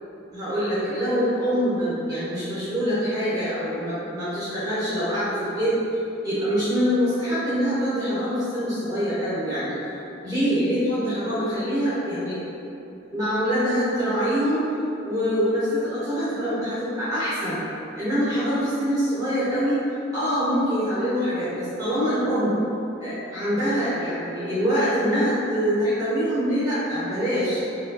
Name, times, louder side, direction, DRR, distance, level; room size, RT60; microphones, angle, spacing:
voice 1, 0.3-9.8 10.2-12.4 13.1-14.6 15.0-17.6 18.0-19.8 20.1-22.5 23.0-27.6, equal, 20° right, -14 dB, 0.9 m, -24 dB
4.8 x 2.3 x 2.6 m, 2.8 s
head